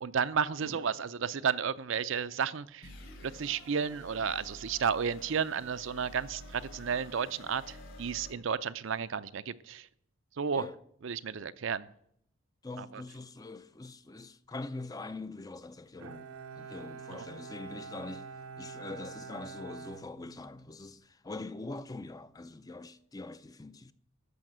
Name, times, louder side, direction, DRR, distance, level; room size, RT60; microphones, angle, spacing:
voice 1, 0.0-2.9 3.2-9.9 10.4-10.7 11.0-11.9 12.8-13.0 17.1-17.2, right 6 dB, 60° right, 0.5 m, -32 dB
sound 1, 2.8-8.3, left 1 dB, 60° left, 4.7 m, -49 dB
voice 2, 12.6-18.3 18.6-23.9, left 2 dB, 15° left, 0.4 m, -43 dB
Bowed string instrument, 16.0-20.9, right 5 dB, 85° right, 0.8 m, -46 dB
13.5 x 5.7 x 7.8 m
head